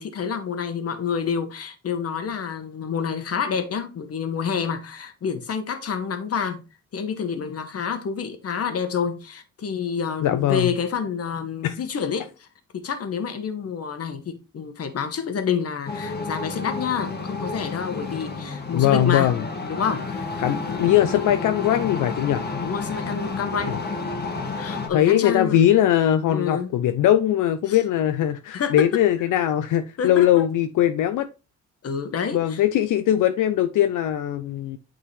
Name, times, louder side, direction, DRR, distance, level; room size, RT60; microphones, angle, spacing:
voice 1, 0.0-6.6 6.9-12.5 12.7-19.3 19.7-20.0 20.6-20.9 22.6-23.8 24.5-25.6 26.2-26.7 27.7-27.8 28.5-28.9 30.0-30.3 31.8-32.6, left 6 dB, 50° left, 1.1 m, -28 dB
voice 2, 10.2-10.7 11.6-11.8 18.7-19.4 20.4-22.4 23.7-23.8 24.9-31.3 32.3-34.8, left 11 dB, 80° left, 0.5 m, -20 dB
sound 1, 15.9-24.9, left 3 dB, 30° left, 1.3 m, -31 dB
8.3 x 3.8 x 3.2 m
cardioid pair, 105°, 31 cm